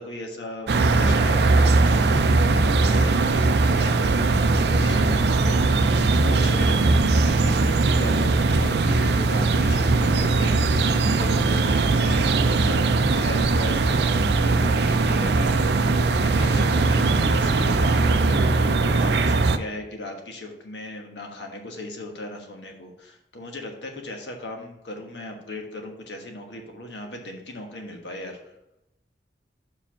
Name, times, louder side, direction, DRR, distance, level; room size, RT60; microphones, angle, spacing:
voice 1, 0.0-28.4, left 1 dB, 85° left, 3 dB, 1.3 m, -37 dB
sound 1, 0.7-19.6, right 3 dB, 70° right, 0.4 m, -20 dB
5.5 x 5.0 x 5.7 m, 0.85 s
head